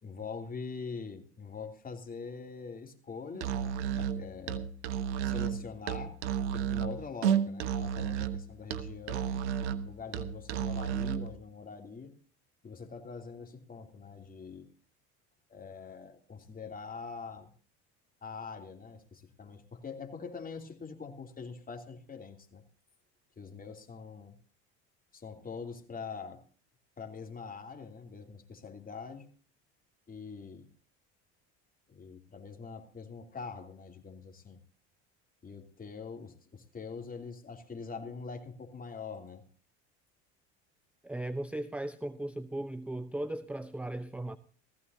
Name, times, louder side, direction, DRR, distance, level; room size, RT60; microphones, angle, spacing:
voice 1, 0.0-4.7 5.2-6.2 6.5-9.3 9.8-12.1 12.6-14.7 15.5-17.5 18.2-22.6 23.4-24.4 25.1-26.4 27.0-29.3 30.1-30.7 31.9-34.6 35.4-39.4, left 5 dB, 25° left, 3.0 m, -44 dB
Musical instrument, 3.3-11.3, right 8 dB, 85° right, 1.2 m, -32 dB
voice 2, 41.0-44.4, right 1 dB, 5° right, 0.7 m, -37 dB
18.5 x 15.5 x 2.8 m
supercardioid pair, 85°, 34 cm